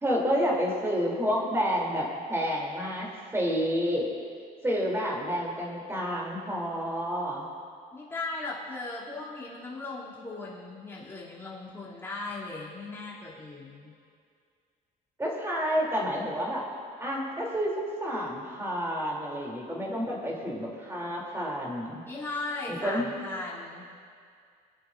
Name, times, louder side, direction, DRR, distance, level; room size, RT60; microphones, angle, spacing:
voice 1, 0.0-3.1 3.3-4.1 4.6-7.4 15.2-16.6 17.0-22.0 22.7-23.0, equal, 15° right, -4 dB, 3.0 m, -29 dB
voice 2, 7.9-13.9 22.1-23.9, left 3 dB, 15° left, -7 dB, 2.8 m, -37 dB
24.0 x 8.5 x 2.6 m, 2.2 s
cardioid pair, 110°, 17 cm